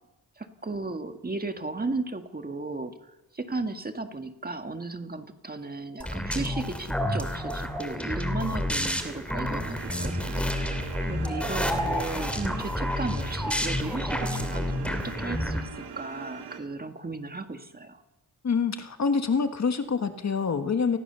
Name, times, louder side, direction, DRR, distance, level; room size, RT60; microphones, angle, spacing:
voice 1, 0.4-2.9 3.3-18.0, right 3 dB, 25° right, 7 dB, 1.8 m, -35 dB
sound 1, 6.0-15.6, left 1 dB, 5° left, 2.6 m, -29 dB
sound 2, 9.7-16.6, right 7 dB, 75° right, 3.3 m, -42 dB
voice 2, 18.4-21.0, left 5 dB, 40° left, 8 dB, 1.6 m, -26 dB
29.0 x 20.5 x 6.9 m, 0.99 s
wide cardioid pair, 170°, 40 cm